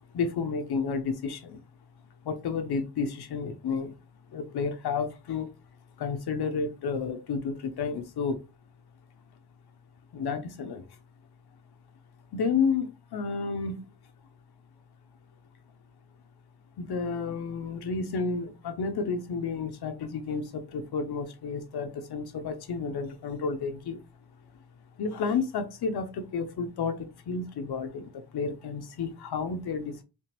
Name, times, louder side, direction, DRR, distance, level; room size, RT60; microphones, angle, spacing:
voice 1, 0.1-1.6 2.2-3.9 4.3-5.5 6.0-8.4 10.1-10.9 12.3-13.8 16.8-24.0 25.0-30.0, left 5 dB, 85° left, 0.6 m, -31 dB
3.5 x 2.8 x 2.8 m
wide cardioid pair, 95°, 38 cm